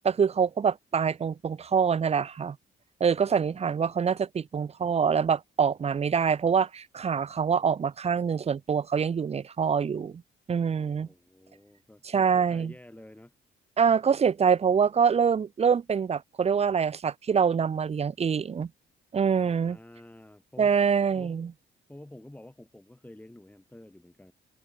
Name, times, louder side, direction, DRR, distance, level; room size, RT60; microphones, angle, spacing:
voice 1, 0.0-2.6 3.0-10.2 10.5-11.1 12.0-12.7 13.8-18.7 19.1-19.8 20.6-21.5, right 6 dB, 30° right, 0.6 m, -25 dB
voice 2, 3.0-4.0 11.0-13.3 19.4-20.8 21.2-21.4 21.9-24.3, left 1 dB, 10° left, 4.9 m, -50 dB
cardioid pair, 90°, 20 cm